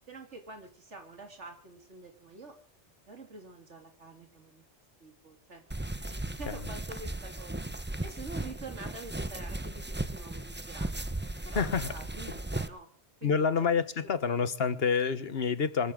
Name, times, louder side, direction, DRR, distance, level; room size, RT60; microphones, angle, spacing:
voice 1, 0.1-2.6 3.1-4.6 5.0-5.6 6.1-7.6 8.0-10.9 11.4-12.9 13.2-14.2, right 3 dB, 85° right, 3.0 m, -47 dB
sound 1, 5.7-12.7, right 1 dB, 10° right, 0.9 m, -36 dB
voice 2, 11.5-11.9 13.2-15.9, left 6 dB, 60° left, 1.4 m, -28 dB
26.0 x 13.5 x 3.8 m
omnidirectional pair, 1.2 m